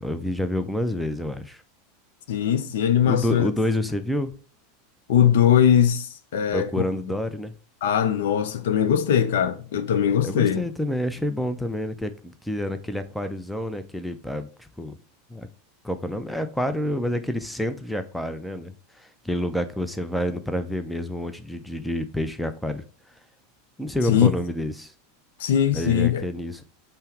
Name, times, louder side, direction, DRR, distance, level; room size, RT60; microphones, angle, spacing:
voice 1, 0.0-1.6 3.1-4.3 6.5-7.5 10.2-14.9 15.3-15.5 15.8-22.8 23.8-24.9 25.7-26.6, left 1 dB, 5° left, 0.4 m, -28 dB
voice 2, 2.3-3.5 5.1-6.8 7.8-10.6 24.1-24.3 25.4-26.2, left 9 dB, 65° left, 0.4 m, -20 dB
5.5 x 2.0 x 4.5 m
figure-of-eight pair, 85°, 0 cm